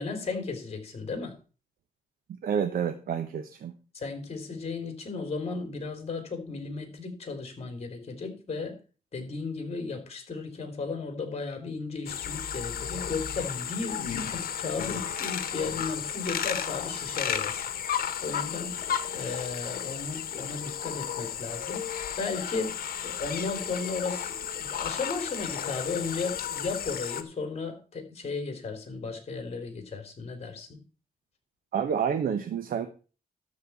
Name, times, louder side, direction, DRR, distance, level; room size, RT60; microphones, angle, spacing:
voice 1, 0.0-1.4 3.9-8.8 9.1-17.6 18.2-18.8 19.1-21.9 22.2-22.8 23.0-30.8, left 4 dB, 40° left, 6 dB, 3.6 m, -35 dB
voice 2, 2.4-3.7 31.7-32.9, right 7 dB, 75° right, 7 dB, 1.2 m, -29 dB
sound 1, 12.1-27.2, left 9 dB, 80° left, 1.3 m, -33 dB
12.5 x 4.4 x 8.2 m, 0.37 s
cardioid pair, 120°, 15 cm